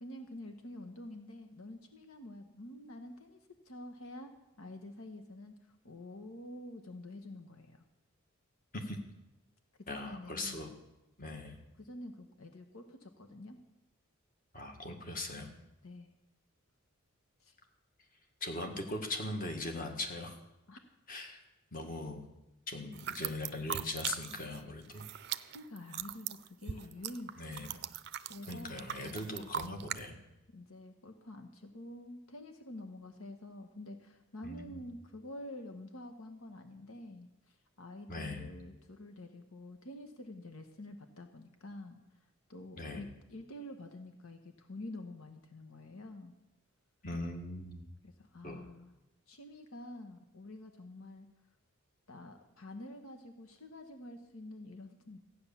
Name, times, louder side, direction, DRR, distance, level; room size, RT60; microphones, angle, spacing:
voice 1, 0.0-3.4 3.6-7.8 9.9-10.8 11.8-13.6 15.8-16.1 17.4-17.6 20.7-20.8 25.5-27.8 28.3-28.8 30.5-42.0 42.5-46.3 48.0-48.9 49.3-51.3 52.1-55.2, left 1 dB, 80° left, 6 dB, 1.2 m, -48 dB
voice 2, 9.9-10.7 11.2-11.6 14.5-15.5 18.4-20.3 21.1-21.4 21.7-22.2 22.7-25.1 27.4-27.7 28.5-30.2 34.4-34.8 38.1-38.5 42.8-43.1 47.0-47.8 48.4-48.6, left 2 dB, 40° left, 3 dB, 1.8 m, -40 dB
sound 1, 22.9-24.6 24.8-30.0, right 10 dB, 50° right, 0.5 m, -40 dB
14.5 x 9.6 x 7.2 m, 0.93 s
head